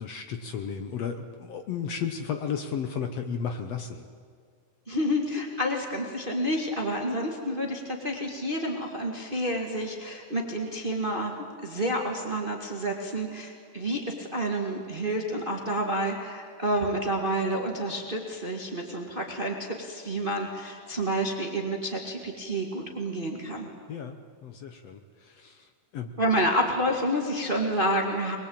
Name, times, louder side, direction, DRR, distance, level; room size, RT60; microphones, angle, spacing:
voice 1, 0.0-4.1 23.9-26.2, left 7 dB, 65° left, 7 dB, 1.7 m, -34 dB
voice 2, 4.9-11.3 11.6-23.7 26.2-28.4, equal, 20° right, 1 dB, 1.6 m, -29 dB
22.0 x 21.5 x 8.8 m, 2.1 s
omnidirectional pair, 3.9 m